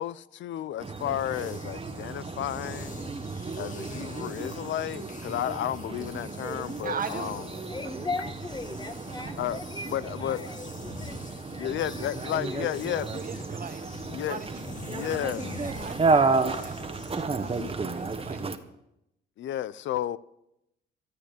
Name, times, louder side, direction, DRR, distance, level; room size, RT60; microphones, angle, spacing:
voice 1, 0.0-2.9 3.6-7.4 9.4-9.6 9.8-10.5 11.6-13.2 14.1-14.5 14.9-15.6 19.4-20.2, left 12 dB, 70° left, 0.6 m, -32 dB
sound 1, 0.8-18.6, right 4 dB, 30° right, 1.3 m, -32 dB
sound 2, 1.0-18.5, left 4 dB, 40° left, 1.9 m, -46 dB
voice 2, 6.8-7.3 13.1-13.8 14.3-14.6 15.6-18.4, right 6 dB, 45° right, 1.6 m, -39 dB
voice 3, 7.7-13.0, left 3 dB, 20° left, 1.4 m, -39 dB
14.0 x 8.8 x 8.4 m
cardioid pair, 90°, 20 cm